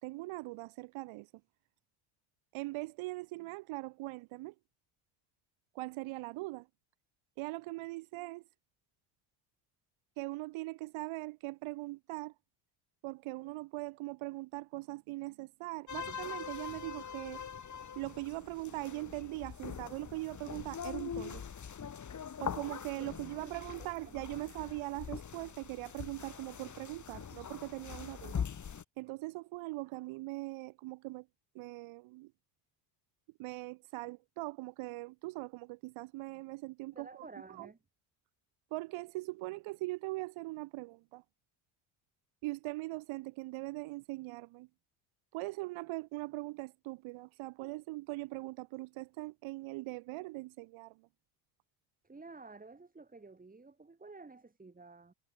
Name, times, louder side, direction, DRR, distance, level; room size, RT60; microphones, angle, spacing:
voice 1, 0.0-1.3 2.5-4.5 5.8-6.7 7.4-8.4 10.2-12.3 13.0-17.4 18.0-21.4 22.4-31.3 31.6-32.3 33.4-37.7 38.7-41.2 42.4-44.7 45.3-51.0, right 21 dB, 80° right, 3.6 m, -41 dB
sound 1, 15.9-28.8, left 7 dB, 35° left, 6.1 m, -43 dB
voice 2, 23.0-23.9 24.3-24.4 36.9-37.8 52.0-55.1, right 3 dB, 15° right, 5.6 m, -52 dB
cardioid pair, 100°, 48 cm